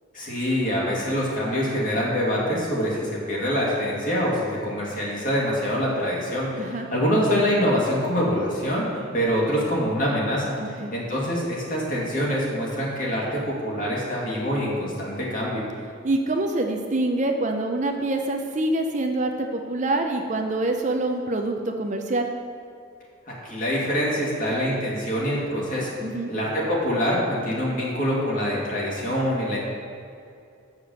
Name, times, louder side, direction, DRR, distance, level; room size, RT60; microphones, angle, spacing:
voice 1, 0.1-15.6 23.3-25.9 26.3-29.6, equal, 40° left, -5 dB, 2.3 m, -25 dB
voice 2, 10.6-10.9 16.0-22.3 26.0-26.3, right 2 dB, 35° right, 4 dB, 0.6 m, -25 dB
7.2 x 6.6 x 7.0 m, 2.5 s
head